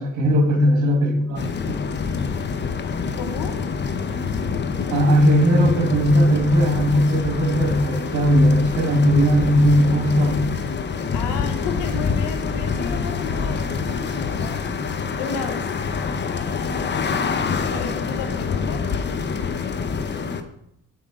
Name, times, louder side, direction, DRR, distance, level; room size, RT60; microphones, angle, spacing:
voice 1, 0.0-1.8 4.9-10.4, equal, 70° right, 2 dB, 1.6 m, -18 dB
sound 1, 1.4-20.4, left 5 dB, 35° left, 0.7 m, -26 dB
voice 2, 3.2-3.6 11.1-14.6 15.2-15.7 17.6-18.9, left 5 dB, 85° left, 7 dB, 1.1 m, -33 dB
7.7 x 5.5 x 3.7 m, 0.79 s
cardioid pair, 90°, 30 cm